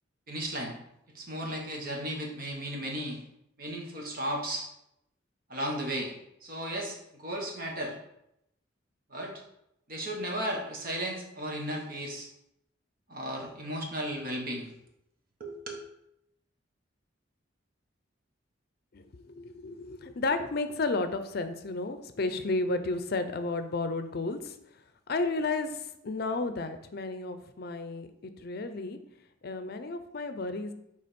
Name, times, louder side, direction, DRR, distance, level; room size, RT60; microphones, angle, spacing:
voice 1, 0.3-0.7 1.1-3.2 3.6-4.7 5.5-6.1 6.4-8.0 9.1-9.3 9.9-12.3 13.1-14.7 15.4-15.8, right 1 dB, 50° right, 0 dB, 1.5 m, -35 dB
voice 2, 18.9-24.6 25.1-29.0 29.4-30.7, left 3 dB, 55° left, 9 dB, 0.5 m, -32 dB
6.8 x 3.5 x 5.2 m, 0.80 s
head